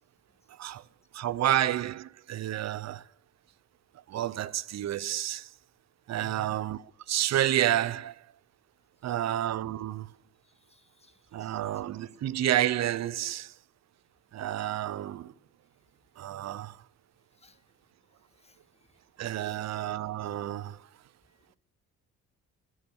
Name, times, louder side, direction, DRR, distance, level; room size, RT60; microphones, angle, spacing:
voice 1, 1.1-3.0 4.1-5.5 6.1-8.2 9.0-10.1 11.3-13.5 14.3-15.3 16.2-16.8 19.2-20.8, right 12 dB, 60° right, 0.7 m, -30 dB
voice 2, 6.2-6.5 10.7-11.1 11.4-11.5 17.4-17.6 18.4-18.6 19.4-19.6, left 3 dB, 20° left, 1.8 m, -54 dB
13.0 x 11.5 x 7.9 m
cardioid pair, 90°, 30 cm